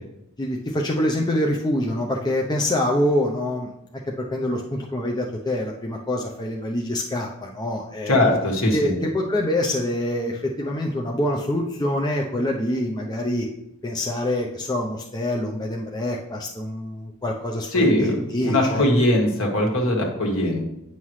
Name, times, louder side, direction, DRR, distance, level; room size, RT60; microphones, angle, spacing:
voice 1, 0.4-3.7 4.2-8.2 8.7-13.5 13.8-18.8, left 1 dB, 20° left, -1 dB, 0.6 m, -25 dB
voice 2, 8.1-8.9 17.7-20.6, left 1 dB, 65° left, 0 dB, 1.7 m, -21 dB
9.5 x 5.7 x 3.2 m, 0.83 s
head